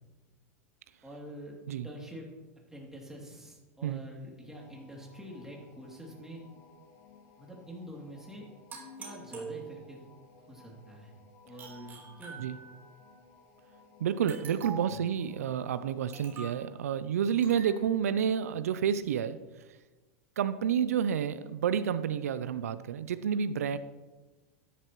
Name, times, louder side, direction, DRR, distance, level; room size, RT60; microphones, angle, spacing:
voice 1, 1.0-2.3 2.7-6.4 7.4-8.5 9.0-10.0 10.3-11.1 11.4-12.4 14.8-15.0, equal, 5° right, -2 dB, 2.9 m, -46 dB
sound 1, 4.5-16.4, left 4 dB, 40° left, 2.8 m, -59 dB
sound 2, 8.7-10.1 11.6-13.0 14.3-15.0 16.1-16.6 17.4-17.8, right 5 dB, 25° right, 3.8 m, -45 dB
voice 2, 14.0-19.4 20.4-23.8, right 8 dB, 85° right, 13 dB, 0.5 m, -30 dB
13.0 x 10.0 x 3.1 m, 1.2 s
hypercardioid pair, 115°, 8 cm